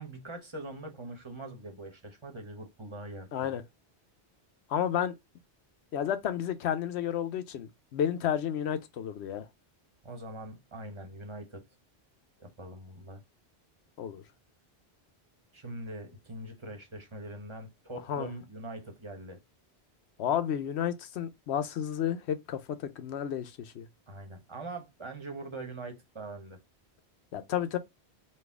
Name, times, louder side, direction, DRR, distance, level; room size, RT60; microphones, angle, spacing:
voice 1, 0.0-3.5 10.0-11.6 12.4-13.2 15.5-19.4 24.1-26.6, right 2 dB, 30° right, 1.0 m, -42 dB
voice 2, 3.3-3.6 4.7-5.2 5.9-9.5 14.0-14.2 18.1-18.3 20.2-23.9 27.3-27.8, left 9 dB, 85° left, 0.9 m, -31 dB
4.3 x 2.4 x 3.5 m
omnidirectional pair, 1.1 m